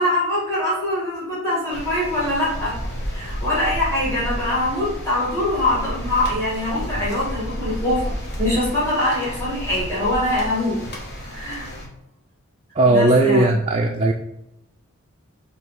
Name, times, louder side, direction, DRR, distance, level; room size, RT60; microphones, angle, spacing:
voice 1, 0.0-2.7 3.1-10.8 11.3-11.7 12.8-13.5, left 1 dB, 15° left, -8 dB, 1.6 m, -23 dB
sound 1, 1.7-11.9, equal, 50° left, 0.9 m, -31 dB
voice 2, 12.8-14.1, right 2 dB, 30° right, 1 dB, 0.3 m, -17 dB
4.0 x 2.8 x 4.5 m, 0.86 s
head